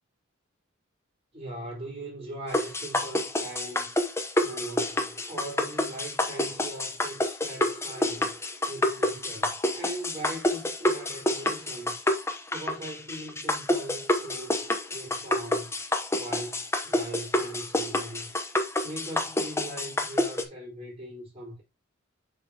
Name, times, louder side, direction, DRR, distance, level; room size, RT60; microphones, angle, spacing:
voice 1, 1.3-8.3 8.6-12.1 12.5-15.7 16.1-18.4 18.8-21.6, right 1 dB, 35° right, 4.1 m, -40 dB
sound 1, 2.5-20.4, left 1 dB, 15° left, 0.9 m, -28 dB
7.0 x 5.6 x 2.9 m
head